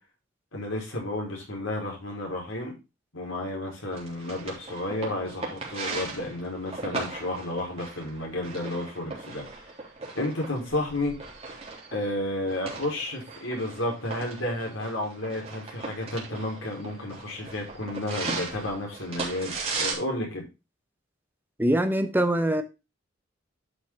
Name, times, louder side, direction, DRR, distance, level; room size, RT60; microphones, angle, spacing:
voice 1, 0.5-2.7 3.1-9.4 10.1-11.1 11.9-20.4, left 1 dB, 90° left, 5.0 m, -32 dB
sound 1, 3.9-19.9, right 3 dB, 30° right, 3.4 m, -37 dB
voice 2, 21.6-22.6, right 1 dB, 10° right, 1.1 m, -23 dB
11.0 x 6.3 x 3.8 m
head